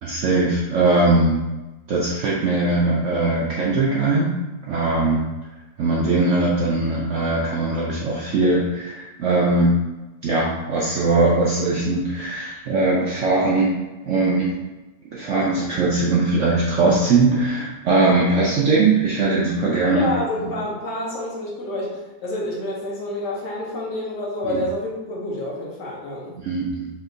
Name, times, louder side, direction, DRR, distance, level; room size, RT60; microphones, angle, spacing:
voice 1, 0.0-1.4 1.9-4.3 4.6-5.2 5.8-9.7 10.2-13.7 14.0-14.6 15.1-20.1 20.4-20.5 24.4-24.6 26.4-26.9, right 3 dB, 70° right, -4 dB, 0.7 m, -20 dB
voice 2, 19.9-26.4, left 1 dB, 70° left, -3 dB, 1.5 m, -28 dB
4.2 x 3.5 x 2.7 m, 1.1 s
omnidirectional pair, 1.8 m